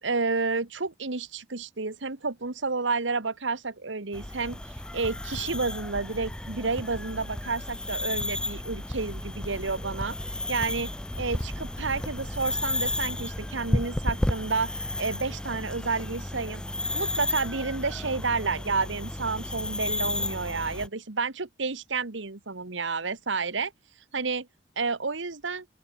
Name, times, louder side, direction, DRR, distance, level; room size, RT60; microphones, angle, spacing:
voice 1, 0.0-4.6 4.9-10.2 10.5-10.9 11.2-16.6 16.9-23.7 24.1-24.5 24.8-25.6, right 4 dB, 75° right, 1.5 m, -30 dB
sound 1, 4.1-20.9, left 1 dB, 5° left, 0.4 m, -32 dB
open air
head